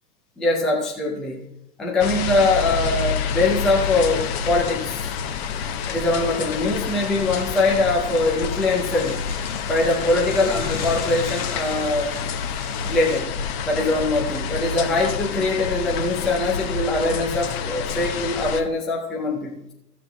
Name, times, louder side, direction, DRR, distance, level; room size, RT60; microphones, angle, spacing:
voice 1, 0.4-1.5 1.8-5.1 5.9-9.2 9.7-12.2 12.8-13.3 13.7-19.7, left 2 dB, ahead, -3 dB, 0.5 m, -22 dB
sound 1, 2.0-18.6, left 7 dB, 40° left, 1.0 m, -28 dB
sound 2, 3.8-13.2, left 4 dB, 15° left, 2.1 m, -41 dB
14.5 x 7.0 x 3.3 m, 0.83 s
hypercardioid pair, 130°, 50 cm